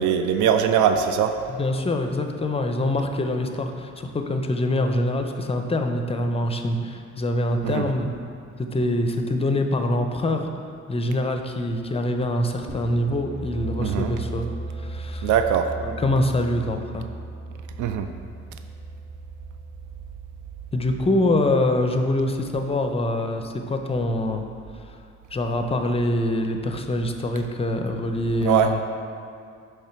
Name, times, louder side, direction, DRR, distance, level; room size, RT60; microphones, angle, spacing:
voice 1, 0.0-1.3 7.6-7.8 13.8-14.1 15.2-15.7 17.8-18.1 28.4-28.7, right 8 dB, 75° right, 7 dB, 0.4 m, -21 dB
voice 2, 1.5-8.1 8.6-10.5 10.9-15.3 15.8-17.0 20.7-24.4 24.7-25.0 25.3-28.8, left 1 dB, 20° left, 5 dB, 0.5 m, -25 dB
sound 1, 12.7-22.3, right 2 dB, 40° right, 1.0 m, -37 dB
5.5 x 3.7 x 5.7 m, 2.3 s
cardioid pair, 90°, 30 cm